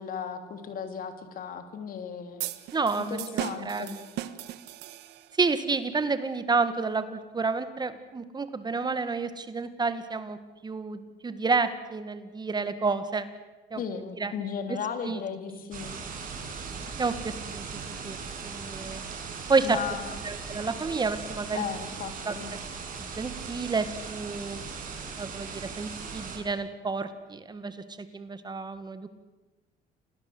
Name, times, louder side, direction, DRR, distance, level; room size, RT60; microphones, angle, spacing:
voice 1, 0.0-2.4 2.9-4.0 13.8-15.9 19.6-20.2 21.5-22.5, left 7 dB, 55° left, 8 dB, 3.1 m, -35 dB
sound 1, 2.4-5.5, right 12 dB, 80° right, 1.4 m, -37 dB
voice 2, 2.7-3.9 5.4-10.4 10.6-13.3 13.7-13.8 14.2-14.3 15.0-15.2 17.0-18.2 18.4-19.0 19.5-19.8 20.2-21.6 22.3-22.4 23.0-24.6 25.2-27.8 28.1-29.1, right 4 dB, 25° right, 11 dB, 1.9 m, -30 dB
sound 2, 15.7-26.4, right 5 dB, 55° right, 6.5 m, -39 dB
28.0 x 19.0 x 8.0 m, 1.2 s
cardioid pair, 110°, 17 cm